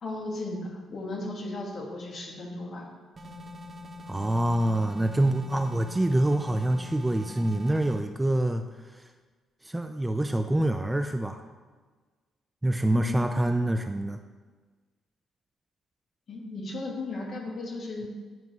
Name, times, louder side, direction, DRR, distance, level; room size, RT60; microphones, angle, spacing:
voice 1, 0.0-2.8 12.9-13.5 16.3-18.1, left 2 dB, 50° left, 0 dB, 1.6 m, -36 dB
sound 1, 3.2-8.0, left 2 dB, 35° right, 1.1 m, -43 dB
voice 2, 4.1-8.6 9.6-11.4 12.6-14.2, right 1 dB, 15° right, 7 dB, 0.3 m, -26 dB
9.2 x 3.2 x 4.6 m, 1.4 s
cardioid pair, 90°, 0 cm